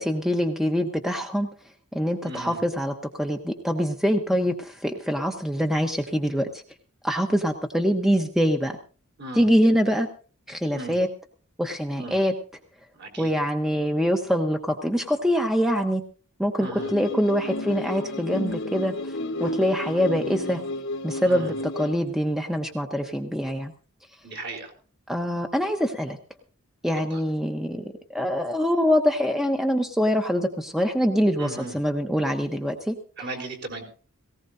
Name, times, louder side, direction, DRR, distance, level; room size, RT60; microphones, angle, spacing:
voice 1, 0.0-1.5 1.9-6.6 7.0-8.8 9.4-10.1 10.5-11.1 11.6-12.3 13.2-16.0 16.4-19.1 19.4-20.6 21.0-21.5 21.8-23.7 25.1-26.2 26.8-33.0, equal, ahead, 4 dB, 0.9 m, -24 dB
voice 2, 2.2-2.6 9.2-9.5 10.7-11.0 12.0-12.2 12.9-13.4 16.6-16.9 21.3-21.6 24.2-24.7 26.9-27.2 31.4-31.8 33.2-33.8, right 2 dB, 50° right, 3 dB, 4.2 m, -37 dB
sound 1, 16.8-21.9, left 2 dB, 55° left, 1.1 m, -32 dB
18.5 x 18.0 x 2.7 m, 0.40 s
head